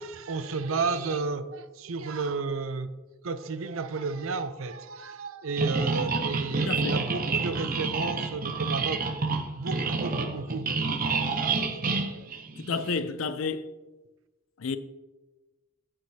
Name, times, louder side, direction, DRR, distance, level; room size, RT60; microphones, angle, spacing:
voice 1, 0.0-2.9 3.2-9.1 9.5-11.0 11.3-11.4 12.1-12.2, right 4 dB, 85° right, 0.6 m, -32 dB
sound 1, 5.6-13.0, right 4 dB, 45° right, 0.7 m, -29 dB
voice 2, 6.7-7.0 12.6-13.6 14.6-14.8, left 4 dB, 85° left, 0.6 m, -30 dB
8.8 x 7.8 x 2.8 m
head